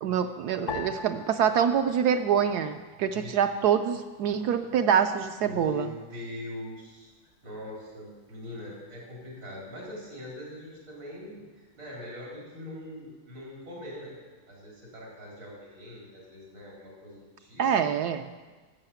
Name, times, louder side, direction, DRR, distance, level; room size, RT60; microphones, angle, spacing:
voice 1, 0.0-5.9 17.6-18.3, right 8 dB, 70° right, 8 dB, 1.0 m, -25 dB
sound 1, 0.7-3.2 3.5-4.4 5.0-5.4, left 4 dB, 60° left, 0.8 m, -42 dB
voice 2, 5.4-7.1 7.4-14.2 14.5-17.7, left 1 dB, 90° right, -4 dB, 4.8 m, -42 dB
12.5 x 7.8 x 7.0 m, 1.3 s
omnidirectional pair, 2.1 m